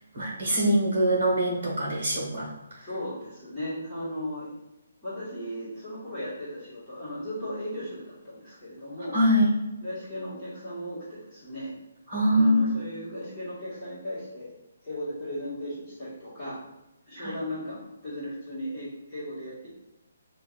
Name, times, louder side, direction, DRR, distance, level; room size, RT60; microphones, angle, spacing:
voice 1, 0.1-2.8 9.1-9.5 12.1-12.7 17.2-17.3, equal, 50° right, -2 dB, 1.3 m, -23 dB
voice 2, 2.8-4.5 5.0-9.2 9.8-11.7 12.3-14.5 14.8-16.6 17.1-19.7, equal, 15° left, -12 dB, 1.3 m, -36 dB
5.3 x 2.5 x 2.3 m, 0.99 s
hypercardioid pair, 180°, 0 cm